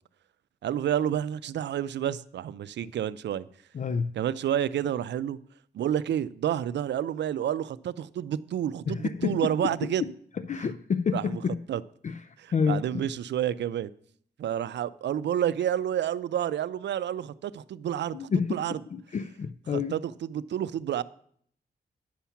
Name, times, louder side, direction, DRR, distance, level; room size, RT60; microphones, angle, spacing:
voice 1, 0.6-3.5 4.2-5.4 5.7-10.0 11.1-11.8 12.4-13.9 14.4-18.8 19.7-21.0, right 10 dB, 90° right, 17 dB, 0.4 m, -29 dB
voice 2, 3.7-4.1 8.9-10.1 10.5-11.6 12.0-13.1 18.1-18.6 18.9-19.9, left 6 dB, 45° left, 12 dB, 0.4 m, -29 dB
10.0 x 5.7 x 7.1 m, 0.63 s
cardioid pair, 90°, 18 cm